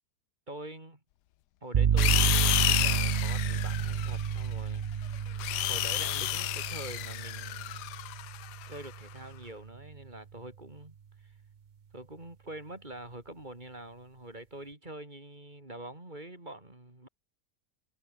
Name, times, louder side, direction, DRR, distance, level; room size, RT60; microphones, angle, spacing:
voice 1, 0.5-1.0 1.6-7.9 8.7-11.0 11.2-11.3 11.9-17.1, right 1 dB, 25° right, 4.4 m, -45 dB
sound 1, 1.7-9.5, right 7 dB, 55° right, 0.5 m, -30 dB
sound 2, 2.0-4.5 5.1-8.9, left 15 dB, 80° left, 1.2 m, -31 dB
omnidirectional pair, 1.8 m